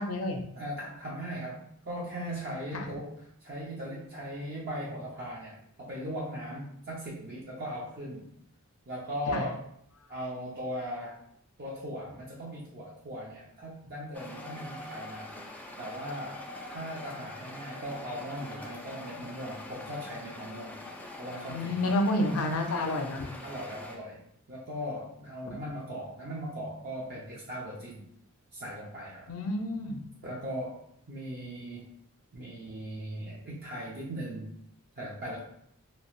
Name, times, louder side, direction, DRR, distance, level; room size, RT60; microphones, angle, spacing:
voice 1, 0.0-0.4 2.7-2.9 9.3-9.4 21.5-23.2 25.5-25.6 29.3-30.0, left 1 dB, 75° left, 4 dB, 0.5 m, -29 dB
voice 2, 0.6-3.1 3.4-8.2 8.9-9.6 10.1-11.2 11.6-15.3 15.8-20.8 21.2-21.9 23.4-24.2 24.5-28.1 28.5-29.3 30.2-30.8 31.1-31.9 32.3-34.5 35.0-35.4, equal, 45° right, -5 dB, 0.6 m, -38 dB
sound 1, 14.1-24.0, left 2 dB, 5° left, 0.3 m, -44 dB
2.9 x 2.0 x 2.9 m, 0.70 s
head